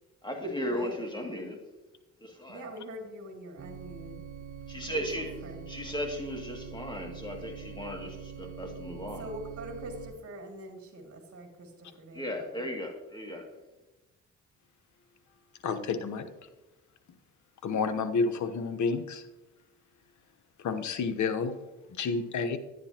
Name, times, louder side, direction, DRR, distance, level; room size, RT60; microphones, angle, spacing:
voice 1, 0.2-1.6 2.2-2.6 4.7-5.3 5.7-9.3 12.1-13.5, equal, 15° left, 1 dB, 2.3 m, -36 dB
voice 2, 2.5-4.2 4.8-5.6 9.2-12.7, right 1 dB, 45° right, 2 dB, 2.5 m, -43 dB
sound 1, 3.6-10.1, right 7 dB, 90° right, 1.1 m, -44 dB
voice 3, 15.6-16.3 17.6-19.2 20.6-21.6 21.9-22.6, left 4 dB, 60° left, 9 dB, 1.1 m, -30 dB
10.5 x 9.9 x 2.9 m, 1.1 s
supercardioid pair, 70°, 32 cm